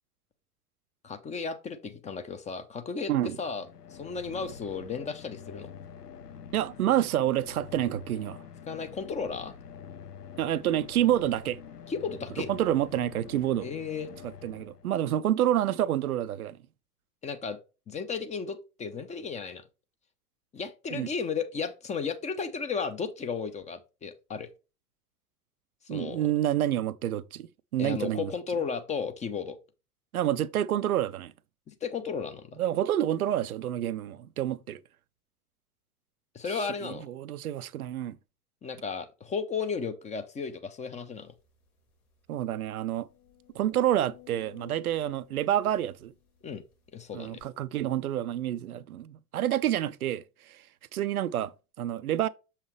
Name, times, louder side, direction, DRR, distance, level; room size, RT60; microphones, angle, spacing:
voice 1, 1.0-3.1 3.4-3.7 4.0-5.7 8.7-9.5 11.9-12.5 13.6-14.2 17.2-17.6 17.9-19.6 20.5-24.5 25.9-26.3 27.8-29.6 31.7-32.6 36.3-37.0 38.6-41.3 46.4-46.6 46.9-47.4, left 5 dB, 15° left, 0.6 m, -34 dB
sound 1, 3.3-15.2, left 7 dB, 90° left, 0.6 m, -46 dB
voice 2, 6.5-8.4 10.4-11.6 12.4-13.7 14.2-16.6 20.9-21.1 25.9-28.3 30.1-31.3 32.6-34.8 36.5-38.2 42.3-43.1 43.5-46.1 47.1-50.6 50.9-52.3, right 12 dB, 70° right, 0.6 m, -28 dB
sound 2, 41.4-41.5 41.9-42.0 42.5-46.7 47.4-47.5, left 11 dB, 70° left, 3.2 m, -55 dB
7.0 x 5.7 x 3.2 m
figure-of-eight pair, 90°, 46 cm